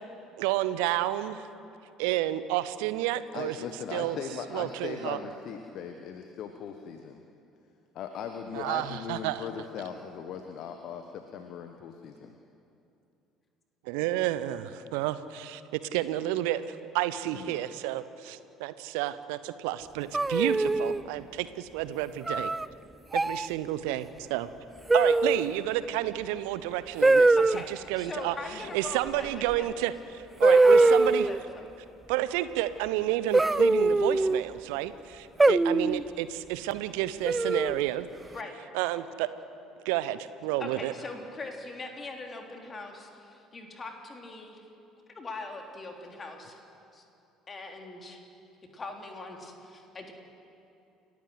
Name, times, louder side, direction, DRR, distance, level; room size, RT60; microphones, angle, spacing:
voice 1, 0.4-1.4 2.0-3.6 3.9-4.2 4.5-5.2 8.5-9.4 13.9-15.6 15.9-22.5 23.1-24.5 24.9-28.3 28.7-31.3 32.1-38.1 38.7-39.3 39.8-40.9, right 14 dB, 65° right, 14 dB, 0.9 m, -30 dB
voice 2, 3.3-7.2 7.9-12.3 17.3-17.6 28.5-28.7, left 7 dB, 50° left, 6 dB, 1.3 m, -39 dB
sound 1, 20.1-21.0 22.3-22.7 23.1-23.5 24.9-25.5 27.0-27.6 29.5-29.6 30.4-31.4 33.3-34.4 35.4-36.0 37.3-37.8, right 2 dB, 15° right, 0.4 m, -22 dB
voice 3, 27.4-29.7 30.5-31.7 38.3-38.5 40.6-44.6 45.1-46.6 46.9-47.0 47.5-48.2 48.7-50.1, left 3 dB, 30° left, 2 dB, 3.5 m, -41 dB
29.5 x 13.5 x 8.0 m, 2.7 s
figure-of-eight pair, 55°, 0 cm